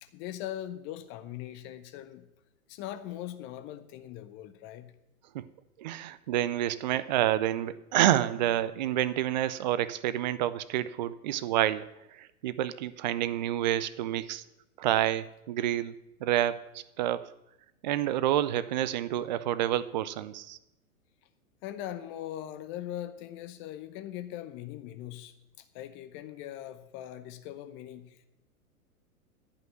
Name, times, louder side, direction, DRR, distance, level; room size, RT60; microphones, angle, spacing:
voice 1, 0.0-2.3 2.7-4.9 21.6-28.3, left 12 dB, 25° left, 10 dB, 0.7 m, -41 dB
voice 2, 5.8-11.9 12.1-14.4 14.8-17.3 17.8-20.6, right 12 dB, 35° right, 16 dB, 0.4 m, -28 dB
10.5 x 5.7 x 7.8 m, 0.89 s
figure-of-eight pair, 105°, 44 cm